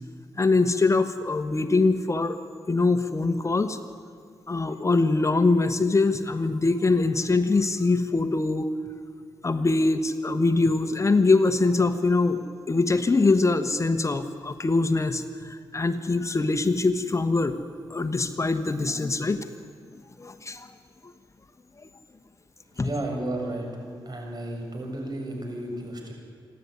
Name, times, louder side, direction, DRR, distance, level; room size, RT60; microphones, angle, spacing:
voice 1, 0.4-2.4 2.7-3.8 4.5-8.7 9.4-17.5 17.9-19.4 20.2-20.7 22.8-22.9, left 3 dB, 35° left, 9 dB, 1.3 m, -23 dB
voice 2, 22.8-26.1, right 1 dB, 50° right, 2 dB, 6.6 m, -33 dB
28.0 x 12.0 x 9.7 m, 2.2 s
cardioid pair, 60°, 9 cm